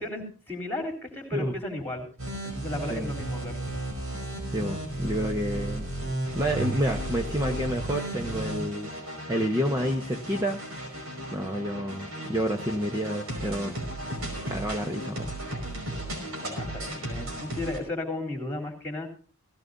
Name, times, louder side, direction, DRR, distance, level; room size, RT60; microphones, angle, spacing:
voice 1, 0.0-2.1 2.4-3.6 16.4-19.1, left 1 dB, 10° left, 5 dB, 3.7 m, -34 dB
sound 1, 2.2-17.8, right 1 dB, 75° right, 5.5 m, -34 dB
voice 2, 4.5-5.9 6.3-8.9 9.3-10.6 11.3-13.9 14.5-15.3, equal, 15° right, 2 dB, 1.0 m, -29 dB
18.0 x 16.5 x 2.7 m, 0.38 s
head